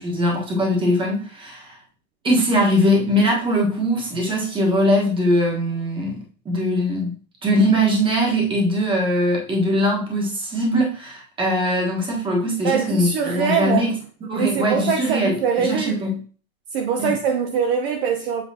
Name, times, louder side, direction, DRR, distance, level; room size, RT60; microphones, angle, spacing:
voice 1, 0.0-1.8 2.2-6.2 6.4-7.1 7.4-13.9 14.3-16.2 17.0-17.1, equal, 10° right, 1.4 m, -21 dB
voice 2, 12.6-13.9 14.3-16.0 16.7-18.4, right 7 dB, 45° right, 0.7 m, -23 dB
7.5 x 4.9 x 2.8 m
supercardioid pair, 165°, 42 cm